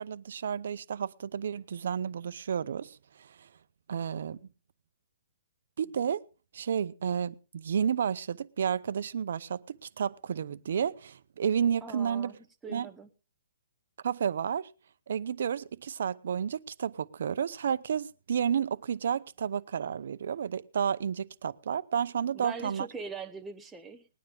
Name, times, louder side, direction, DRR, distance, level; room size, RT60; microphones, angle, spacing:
voice 1, 0.0-3.5 3.9-4.4 5.8-6.2 6.5-12.3 12.7-12.9 14.0-14.7 15.1-22.9, right 7 dB, 60° right, 0.7 m, -31 dB
voice 2, 11.8-12.4 12.6-13.1 22.3-24.1, right 4 dB, 5° right, 0.8 m, -41 dB
20.0 x 9.5 x 3.7 m
hypercardioid pair, 165°, 0 cm